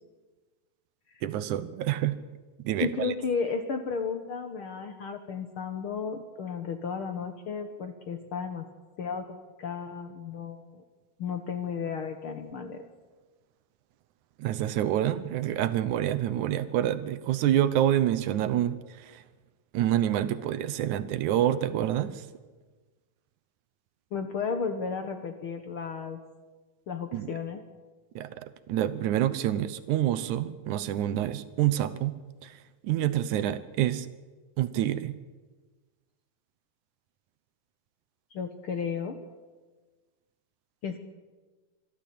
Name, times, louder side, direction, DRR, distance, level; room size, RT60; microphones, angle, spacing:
voice 1, 1.2-2.2 2.6-3.1 14.4-19.2 19.7-22.2 27.1-27.4 28.2-32.1 32.4-32.6 32.8-34.1 34.6-35.2, right 12 dB, 75° right, 14 dB, 2.2 m, -27 dB
voice 2, 2.8-8.7 9.0-10.8 11.2-12.8 24.1-26.2 26.9-27.6 38.3-39.2 40.8-41.0, left 5 dB, 60° left, 7 dB, 1.5 m, -33 dB
25.0 x 12.5 x 8.5 m, 1.3 s
omnidirectional pair, 3.6 m